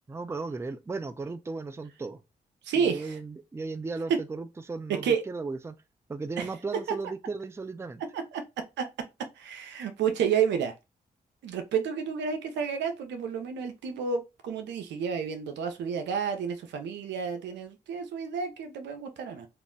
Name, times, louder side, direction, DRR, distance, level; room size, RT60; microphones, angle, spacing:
voice 1, 0.1-2.2 2.7-5.8 6.1-8.0, right 3 dB, 15° right, 0.4 m, -36 dB
voice 2, 2.6-3.2 4.1-4.2 5.0-5.2 6.4-6.5 8.1-8.4 8.8-8.9 9.4-10.7 11.4-19.5, right 6 dB, 85° right, 0.6 m, -30 dB
2.5 x 2.0 x 3.6 m
supercardioid pair, 50°, 18 cm